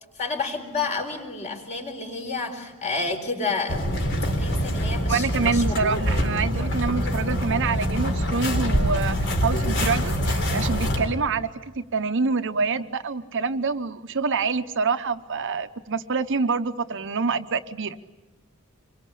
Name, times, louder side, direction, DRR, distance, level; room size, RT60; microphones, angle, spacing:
voice 1, 0.2-3.9 4.4-5.8, left 4 dB, 35° left, 3 dB, 4.3 m, -30 dB
sound 1, 3.7-11.1, equal, 55° left, 3.8 m, -25 dB
voice 2, 5.1-9.2 9.4-18.0, right 4 dB, 55° right, 9 dB, 0.9 m, -26 dB
26.5 x 23.5 x 8.5 m, 1.1 s
head